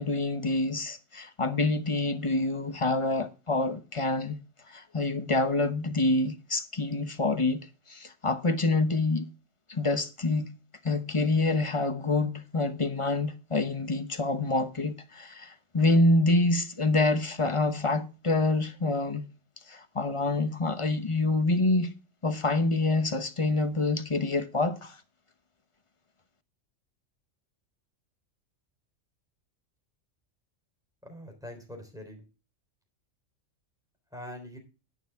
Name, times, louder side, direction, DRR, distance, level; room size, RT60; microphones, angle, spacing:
voice 1, 0.0-4.4 4.7-9.3 9.7-10.5 10.8-19.2 19.7-21.9 22.2-25.0, left 2 dB, 30° left, 0.8 m, -27 dB
voice 2, 31.0-32.3 34.1-34.6, left 1 dB, 5° right, 3.6 m, -43 dB
11.0 x 9.4 x 3.5 m
omnidirectional pair, 1.3 m